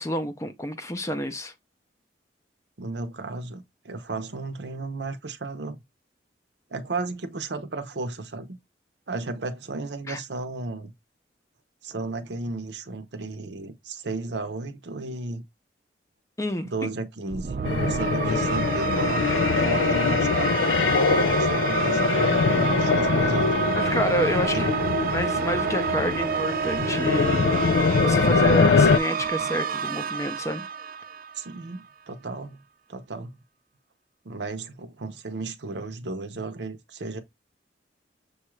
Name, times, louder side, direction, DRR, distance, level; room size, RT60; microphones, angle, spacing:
voice 1, 0.0-1.5 10.1-10.2 16.4-16.7 23.8-27.5 28.0-30.7, equal, 15° left, 0.5 m, -29 dB
voice 2, 2.8-5.8 6.7-8.6 9.1-10.9 11.8-15.4 16.6-17.6 17.9-23.5 24.5-24.7 31.3-32.6 32.9-33.3 34.2-37.2, right 3 dB, 70° right, 0.7 m, -34 dB
sound 1, 17.3-31.7, right 6 dB, 50° right, 0.3 m, -28 dB
sound 2, 17.6-29.0, left 5 dB, 85° left, 0.4 m, -23 dB
6.4 x 2.4 x 3.1 m
head